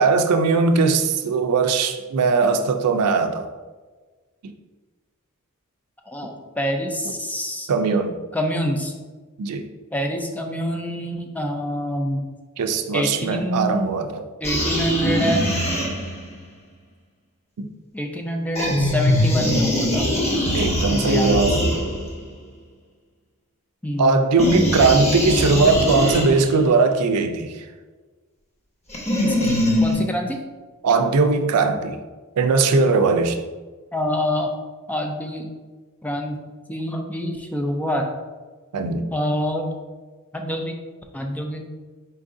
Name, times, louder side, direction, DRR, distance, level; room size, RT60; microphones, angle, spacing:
voice 1, 0.0-3.4 4.4-4.5 7.7-8.1 9.4-9.7 12.6-14.2 17.6-17.7 20.5-21.7 24.0-27.7 30.8-32.0 32.4-33.4 38.7-39.1, right 4 dB, 85° right, 6 dB, 0.4 m, -19 dB
voice 2, 6.1-7.7 8.3-8.9 9.9-12.2 12.9-13.9 14.4-15.8 17.9-20.1 20.6-21.4 23.8-24.2 29.2-30.4 33.9-34.5 34.9-35.5 36.0-36.4 36.7-38.1 39.1-39.6 40.3-40.8 41.1-41.7, equal, 5° left, 3 dB, 0.3 m, -26 dB
sound 1, 14.4-16.3 18.5-22.3 24.4-26.6 28.9-30.0, left 1 dB, 30° left, 0.9 m, -22 dB
4.5 x 2.5 x 3.7 m, 1.3 s
head